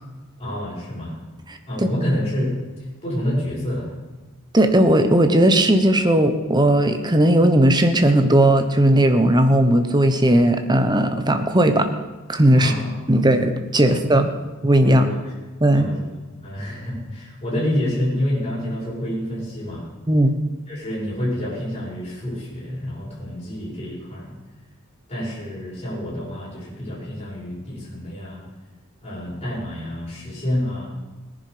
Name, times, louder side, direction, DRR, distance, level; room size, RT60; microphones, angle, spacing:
voice 1, 0.4-1.2 1.7-2.5 3.0-3.9 12.5-13.0 13.8-14.1 14.8-15.3 15.7-16.1 16.4-19.9 20.7-24.3 25.1-28.4 29.0-30.9, left 1 dB, 30° left, -9 dB, 6.4 m, -28 dB
voice 2, 4.5-11.9 12.3-12.7 13.1-14.3 14.6-15.0 15.6-15.9 20.1-20.4, right 1 dB, 20° right, 7 dB, 1.1 m, -16 dB
18.0 x 10.5 x 5.1 m, 1.2 s
head